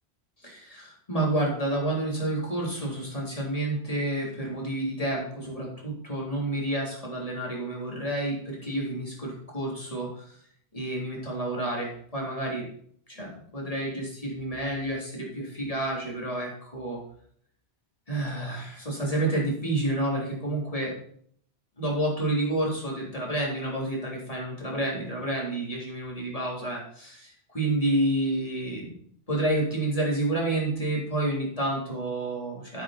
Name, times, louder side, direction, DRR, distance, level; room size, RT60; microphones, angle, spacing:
voice 1, 0.4-10.4 10.7-12.7 13.1-17.0 18.1-20.9 21.8-28.9 29.3-32.8, right 1 dB, 35° left, -3 dB, 3.9 m, -29 dB
13.0 x 9.0 x 4.4 m, 0.62 s
omnidirectional pair, 1.1 m